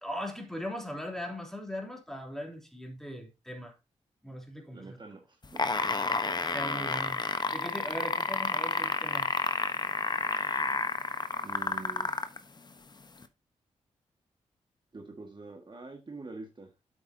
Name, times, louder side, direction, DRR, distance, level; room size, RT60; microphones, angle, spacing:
voice 1, 0.0-3.7 4.2-5.0 6.4-7.2 7.5-9.3, equal, 5° left, 3.6 m, -39 dB
voice 2, 4.7-5.4 11.4-12.1 14.9-16.8, right 3 dB, 40° right, 1.9 m, -45 dB
sound 1, 5.4-12.4 13.2-13.3, left 3 dB, 35° left, 1.1 m, -30 dB
8.5 x 8.3 x 2.9 m
cardioid pair, 55°, 12 cm